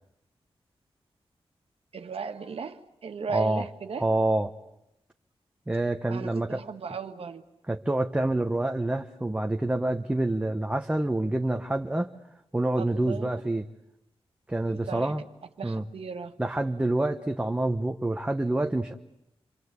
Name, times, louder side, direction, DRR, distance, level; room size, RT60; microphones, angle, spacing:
voice 1, 1.9-4.1 6.1-7.4 12.8-13.3 14.7-15.2 15.6-16.4, right 5 dB, 70° right, 7 dB, 1.6 m, -36 dB
voice 2, 3.3-3.7 4.0-4.5 5.7-6.6 7.7-12.1 12.5-13.6 14.5-15.2 15.6-15.8 16.4-18.9, right 2 dB, 10° right, 4 dB, 1.0 m, -27 dB
28.0 x 24.0 x 8.2 m, 0.85 s
wide cardioid pair, 85°, 10 cm